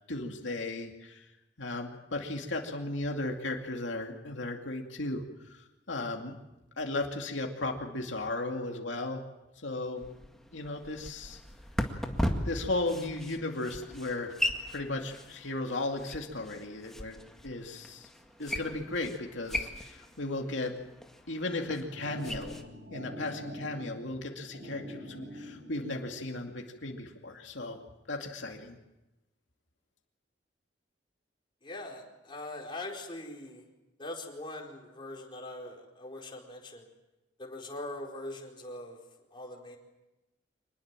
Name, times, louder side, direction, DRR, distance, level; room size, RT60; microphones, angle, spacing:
voice 1, 0.1-1.2 1.6-6.4 6.8-9.2 9.6-10.0 10.5-11.4 12.4-14.3 14.7-17.2 17.4-18.1 18.4-20.7 21.3-22.6 22.9-27.8 28.1-28.8, left 2 dB, 90° left, 2 dB, 2.4 m, -35 dB
sound 1, 10.0-22.6, left 1 dB, ahead, 1.9 m, -38 dB
sound 2, 21.7-26.5, equal, 65° right, 5.3 m, -45 dB
voice 2, 31.6-33.6 34.0-36.9 37.4-39.0 39.3-39.8, left 2 dB, 25° left, -1 dB, 4.5 m, -42 dB
25.5 x 20.5 x 7.6 m, 0.99 s
head